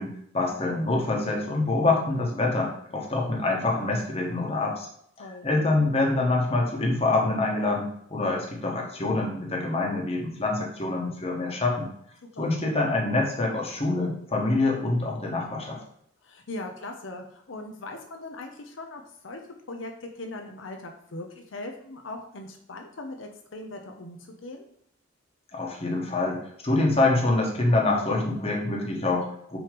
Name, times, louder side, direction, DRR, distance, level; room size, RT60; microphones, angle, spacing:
voice 1, 0.0-4.9 5.4-11.9 12.4-15.8 25.5-29.6, left 2 dB, 30° left, -1 dB, 1.3 m, -25 dB
voice 2, 16.2-19.4 19.7-24.7, left 2 dB, 80° left, 3 dB, 0.7 m, -40 dB
6.2 x 3.1 x 5.1 m, 0.69 s
head